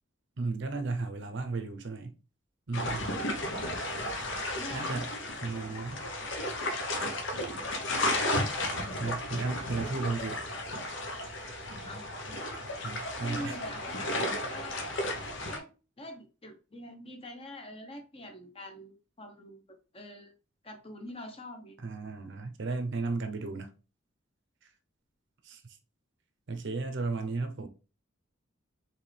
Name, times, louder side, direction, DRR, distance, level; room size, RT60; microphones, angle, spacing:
voice 1, 0.4-2.1 2.7-3.1 4.4-5.1 5.4-6.0 9.0-10.4 12.8-13.6 21.8-23.7 25.4-25.6 26.5-27.7, right 3 dB, 65° right, 0.7 m, -34 dB
sound 1, 2.7-15.6, left 1 dB, 65° left, 0.9 m, -34 dB
voice 2, 3.5-3.8 4.6-4.9 5.7-5.8 11.8-12.1 13.2-14.8 15.5-15.7 16.0-19.6 19.9-20.3 20.6-21.8, left 1 dB, 30° left, 0.9 m, -45 dB
4.4 x 3.2 x 3.3 m
head